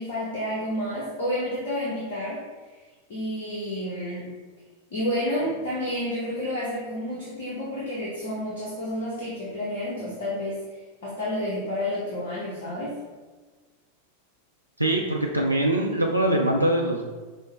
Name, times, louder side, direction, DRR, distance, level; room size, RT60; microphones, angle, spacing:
voice 1, 0.0-2.4 3.1-4.3 4.9-13.0, left 1 dB, 60° left, -6 dB, 0.9 m, -30 dB
voice 2, 14.8-17.0, right 1 dB, 85° right, 0 dB, 0.3 m, -23 dB
5.1 x 2.1 x 3.3 m, 1.3 s
figure-of-eight pair, 90°, 0 cm